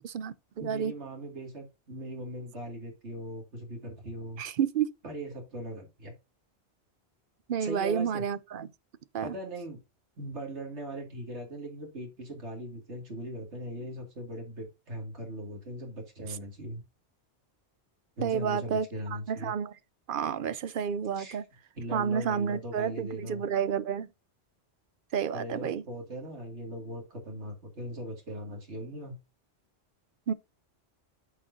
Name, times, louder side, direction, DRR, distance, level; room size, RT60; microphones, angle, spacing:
voice 1, 0.6-4.4 5.0-6.1 7.6-8.2 9.2-9.8 10.2-16.8 18.2-19.5 21.1-21.4 21.8-23.4 25.3-29.2, right 1 dB, 80° right, 2.7 m, -39 dB
voice 2, 4.4-4.9 7.5-8.7 9.1-9.3 18.2-18.9 19.3-19.7 20.1-21.4 21.9-24.1 25.1-25.8 30.3-30.4, right 7 dB, 60° right, 0.7 m, -30 dB
9.3 x 6.3 x 2.7 m
omnidirectional pair, 1.2 m